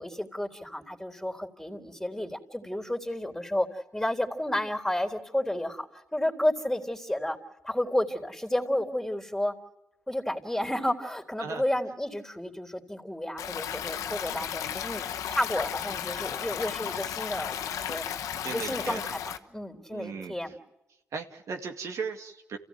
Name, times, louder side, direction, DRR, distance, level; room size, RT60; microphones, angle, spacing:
voice 1, 0.0-7.4 7.6-9.5 10.1-18.0 18.5-20.6, left 1 dB, 5° left, 4 dB, 3.7 m, -31 dB
Stream, 13.4-19.4, left 9 dB, 90° left, 1.1 m, -34 dB
voice 2, 18.4-19.0 19.9-20.5 21.1-22.6, right 5 dB, 70° right, 4 dB, 2.2 m, -37 dB
28.5 x 16.0 x 9.4 m, 0.94 s
supercardioid pair, 55°, 5 cm